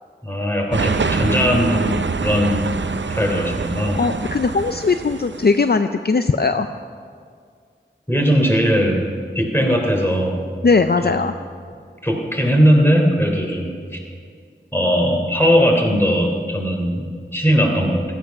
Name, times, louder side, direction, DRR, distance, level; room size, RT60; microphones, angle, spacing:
voice 1, 0.2-2.7 3.1-4.0 8.1-9.1 9.3-10.4 11.0-11.1 12.0-13.7 14.7-17.1 17.3-18.0, equal, 10° left, 1 dB, 3.2 m, -18 dB
sound 1, 0.7-5.6, right 4 dB, 70° right, 0.6 m, -25 dB
voice 2, 4.0-6.7 10.6-11.3, left 4 dB, 55° left, 9 dB, 0.5 m, -19 dB
16.5 x 14.0 x 5.9 m, 2.1 s
wide cardioid pair, 45°, 20 cm